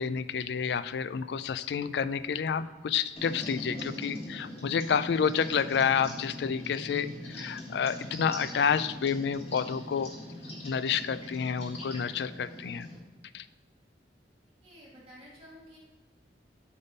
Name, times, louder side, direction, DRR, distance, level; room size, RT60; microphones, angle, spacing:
voice 1, 0.0-10.1 10.6-12.9 13.3-13.5, left 7 dB, 65° left, 14 dB, 0.3 m, -29 dB
sound 1, 3.1-13.0, left 1 dB, 35° left, 1.8 m, -42 dB
voice 2, 14.6-15.8, equal, 35° right, -7 dB, 2.2 m, -51 dB
7.8 x 3.7 x 5.2 m, 1.3 s
head